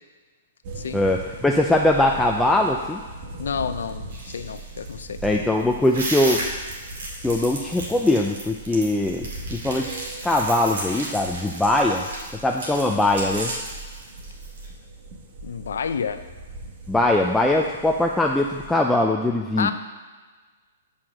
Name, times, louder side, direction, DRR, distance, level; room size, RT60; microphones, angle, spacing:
sound 1, 0.6-18.8, right 2 dB, 50° right, 1.3 m, -40 dB
voice 1, 0.9-3.0 5.2-6.4 7.2-12.0 12.4-13.5 16.9-19.7, left 1 dB, 5° left, 0 dB, 0.4 m, -21 dB
voice 2, 3.4-5.2 15.4-16.2 19.6-19.7, left 6 dB, 80° left, 10 dB, 0.5 m, -29 dB
sound 2, 4.1-14.7, right 2 dB, 75° right, 2.2 m, -34 dB
5.7 x 4.9 x 6.2 m, 1.4 s
hypercardioid pair, 135°, 0 cm